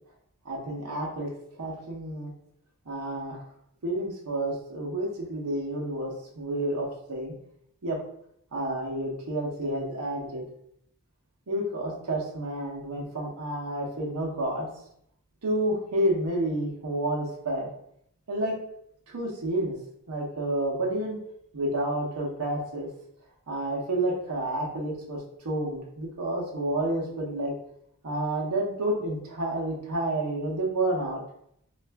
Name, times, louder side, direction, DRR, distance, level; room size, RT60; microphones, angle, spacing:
voice 1, 0.4-1.3 1.6-2.3 2.9-3.4 3.8-7.3 7.8-8.0 8.5-10.4 11.5-14.7 15.4-17.7 18.3-18.6 19.1-19.7 20.1-21.2 21.5-22.9 23.5-27.5 28.0-31.2, right 1 dB, 85° right, -1 dB, 0.7 m, -30 dB
3.2 x 2.4 x 3.3 m, 0.71 s
head